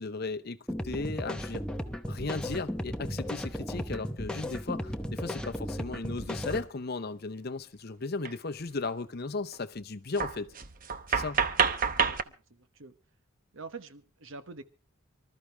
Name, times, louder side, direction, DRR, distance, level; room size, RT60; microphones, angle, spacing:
voice 1, 0.0-1.6 2.1-10.5 11.1-11.4, left 3 dB, 45° left, 0.7 m, -36 dB
sound 1, 0.7-6.7, equal, 5° left, 0.8 m, -35 dB
sound 2, 6.5-6.6 8.2-8.3 8.6-8.9 9.5-9.6 10.1-12.2, right 6 dB, 40° right, 0.8 m, -28 dB
voice 2, 11.9-12.9 13.5-14.6, right 4 dB, 60° right, 1.1 m, -46 dB
25.0 x 13.0 x 3.4 m
head